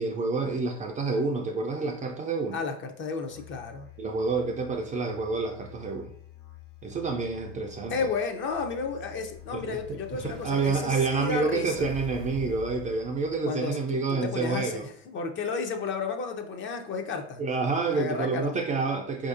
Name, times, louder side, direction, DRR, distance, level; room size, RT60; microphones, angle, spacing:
voice 1, 0.0-2.6 4.0-6.1 6.8-8.0 9.5-14.9 17.4-19.3, right 4 dB, 25° right, 2 dB, 0.3 m, -28 dB
voice 2, 2.5-3.9 7.9-11.9 13.4-17.4 17.9-18.6, left 5 dB, 35° left, 4 dB, 0.5 m, -32 dB
Musical instrument, 3.2-13.2, left 15 dB, 75° left, 0.8 m, -49 dB
Explosion, 7.5-10.7 11.7-13.7, left 4 dB, 55° left, 1.0 m, -47 dB
4.6 x 2.6 x 2.5 m, 0.63 s
supercardioid pair, 105°, 33 cm